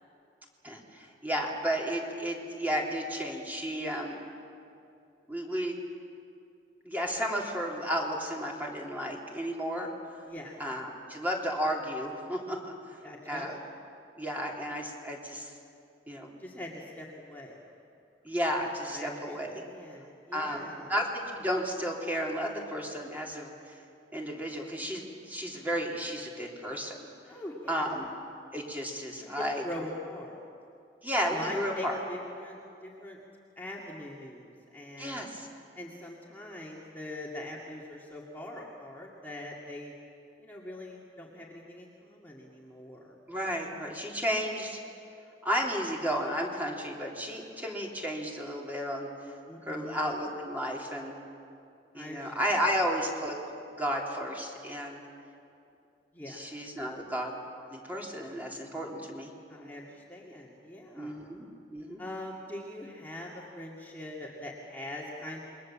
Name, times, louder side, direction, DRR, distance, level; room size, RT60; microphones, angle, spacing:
voice 1, 0.6-4.2 5.3-5.8 6.8-9.9 10.6-12.7 13.2-13.6 14.2-15.5 16.1-16.3 18.2-19.6 20.3-23.5 24.1-26.9 27.7-28.1 28.5-29.6 31.0-32.0 35.0-35.5 43.3-44.8 45.4-49.1 49.7-51.2 51.9-53.4 53.8-55.0 56.3-57.4 57.7-59.3 61.0-61.4 61.7-62.0, equal, 10° right, -2 dB, 3.4 m, -33 dB
voice 2, 13.0-13.5 16.4-17.6 18.9-20.9 27.3-28.0 29.2-30.4 31.3-33.2 33.6-35.2 35.7-39.9 40.4-43.2 49.4-50.1 51.9-52.6 56.1-56.5 59.5-61.2 62.0-65.4, left 1 dB, 10° left, -4 dB, 2.3 m, -42 dB
28.0 x 22.5 x 7.5 m, 2.5 s
head